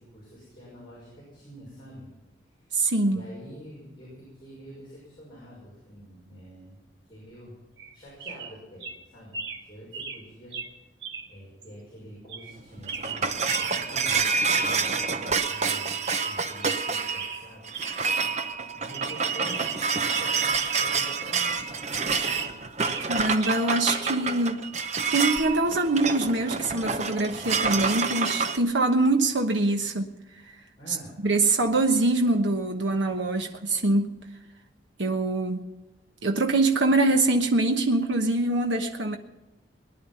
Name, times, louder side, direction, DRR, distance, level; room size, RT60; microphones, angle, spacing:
voice 1, 0.0-2.1 2.6-2.7 3.1-6.8 7.1-7.5 7.9-8.9 9.1-9.4 9.7-10.6 11.3-16.0 16.2-17.6 18.7-21.7 30.8-31.1, equal, 25° left, 5.9 m, -46 dB
voice 2, 2.7-3.2 23.1-24.6 25.1-30.1 31.2-34.1 35.0-35.7 36.2-39.2, right 2 dB, 85° right, 1.1 m, -24 dB
sound 1, 7.8-7.9 8.2-8.5 8.8-9.0 9.3-9.6 9.9-10.2 10.5-10.7 11.0-11.3 11.6-11.7 12.3-12.5 12.8-13.8 14.0-14.2 14.5-14.8 15.1-15.2 15.5-15.8 16.0-16.8 17.1-17.4 17.7-18.0 18.3-18.4 18.8-19.2 19.4-20.8 21.1-21.2 21.8-23.1 23.4-24.1 25.3-25.6, right 5 dB, 65° right, 2.0 m, -37 dB
sound 2, 12.6-28.6, right 5 dB, 40° right, 0.8 m, -28 dB
20.0 x 11.0 x 5.7 m
head